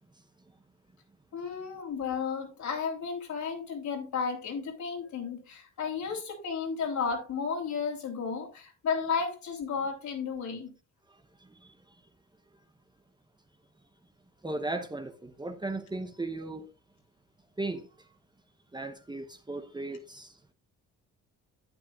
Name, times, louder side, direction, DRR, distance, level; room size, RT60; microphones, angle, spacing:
voice 1, 1.3-10.7, left 5 dB, 70° left, 3.5 m, -33 dB
voice 2, 11.1-11.8 14.4-16.7 17.6-18.1 18.7-20.4, right 2 dB, 15° right, 1.0 m, -37 dB
11.5 x 9.0 x 2.5 m
cardioid pair, 90°, 30 cm